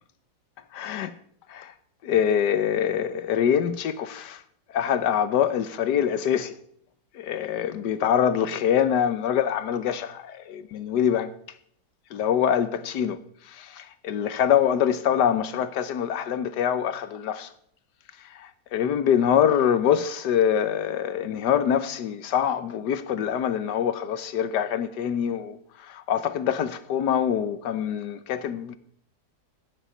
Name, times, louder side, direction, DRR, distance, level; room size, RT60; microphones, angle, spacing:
voice 1, 0.7-1.1 1.5-1.7 2.0-4.4 4.7-6.5 7.1-11.3 12.1-13.2 13.4-17.5 18.2-28.8, left 9 dB, 75° left, 1.5 m, -24 dB
15.5 x 10.5 x 5.1 m
omnidirectional pair, 1.8 m